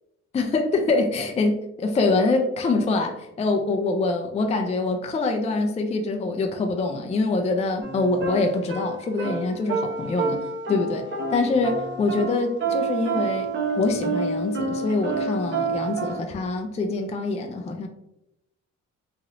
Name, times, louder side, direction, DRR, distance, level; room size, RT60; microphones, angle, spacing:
voice 1, 0.3-10.4 10.7-17.9, left 3 dB, 20° left, 4 dB, 0.4 m, -25 dB
sound 1, 7.8-16.2, right 4 dB, 40° right, 0.8 m, -28 dB
3.0 x 2.8 x 2.5 m, 0.86 s
cardioid pair, 90°, 30 cm